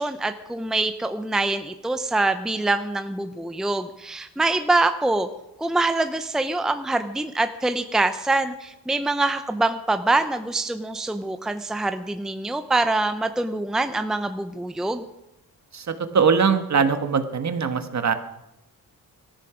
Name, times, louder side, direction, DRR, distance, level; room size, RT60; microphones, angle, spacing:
voice 1, 0.0-5.3 5.6-15.0, right 2 dB, ahead, 9 dB, 0.7 m, -24 dB
voice 2, 15.7-18.1, right 6 dB, 50° right, 9 dB, 1.5 m, -21 dB
18.0 x 13.5 x 5.0 m, 0.86 s
cardioid pair, 105°, 37 cm